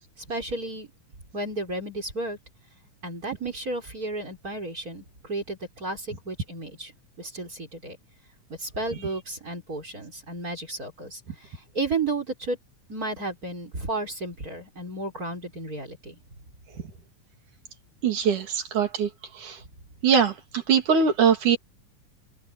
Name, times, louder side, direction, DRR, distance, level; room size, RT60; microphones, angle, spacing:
voice 1, 0.2-0.9 1.3-2.4 3.0-6.9 7.2-8.0 8.6-12.6 12.9-16.2, right 2 dB, 25° right, 4.4 m, -33 dB
voice 2, 18.0-19.1 19.4-19.6 20.0-20.3 20.7-21.6, right 6 dB, 70° right, 4.2 m, -21 dB
omnidirectional pair, 3.7 m